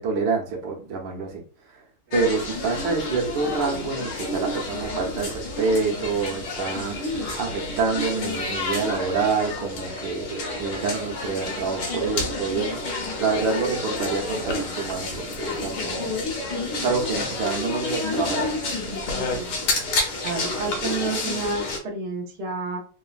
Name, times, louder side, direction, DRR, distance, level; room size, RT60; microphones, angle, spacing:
voice 1, 0.0-1.4 1.7-1.8 2.1-16.2 16.8-18.6, right 4 dB, 70° right, 1 dB, 1.4 m, -27 dB
sound 1, 2.1-21.8, left 2 dB, 65° left, 1.1 m, -29 dB
voice 2, 20.2-22.8, right 3 dB, 85° right, 0 dB, 0.5 m, -30 dB
3.7 x 2.0 x 2.4 m, 0.37 s
omnidirectional pair, 2.3 m